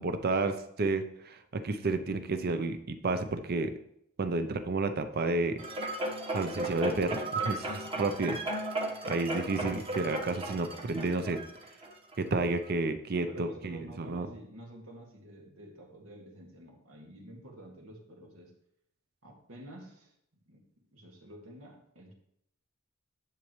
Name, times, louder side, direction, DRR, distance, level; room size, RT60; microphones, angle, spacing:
voice 1, 0.0-3.7 4.2-5.5 6.3-8.4 9.1-11.4 12.2-14.3, right 3 dB, 50° right, 9 dB, 0.6 m, -31 dB
sound 1, 5.6-12.1 12.7-12.8, right 2 dB, 25° right, 1.2 m, -35 dB
voice 2, 9.6-10.1 13.1-18.5 19.2-20.1 20.5-20.6 20.9-22.1, right 1 dB, 85° right, 1 dB, 2.1 m, -49 dB
10.5 x 7.3 x 3.2 m, 0.74 s
head